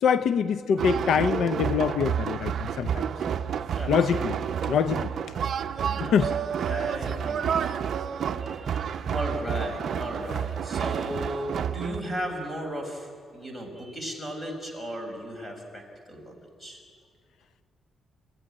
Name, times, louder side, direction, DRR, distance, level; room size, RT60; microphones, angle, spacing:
voice 1, 0.0-3.0 3.9-4.4 4.6-5.1 6.0-6.3, left 7 dB, 70° left, 11 dB, 0.6 m, -24 dB
sound 1, 0.8-12.0, right 8 dB, 50° right, 0.7 m, -29 dB
voice 2, 5.8-7.7 8.4-16.8, equal, 10° left, 3 dB, 5.2 m, -36 dB
29.5 x 15.0 x 10.0 m, 2.1 s
cardioid pair, 160°, 0 cm